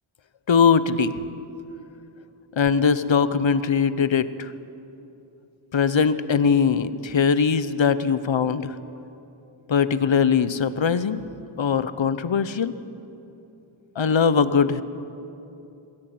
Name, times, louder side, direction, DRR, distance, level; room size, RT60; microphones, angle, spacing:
voice 1, 0.5-1.1 2.6-4.5 5.7-8.7 9.7-11.2 11.6-12.7 14.0-14.8, left 6 dB, 65° left, 14 dB, 0.9 m, -21 dB
22.0 x 14.5 x 9.4 m, 2.8 s
wide cardioid pair, 70°, 49 cm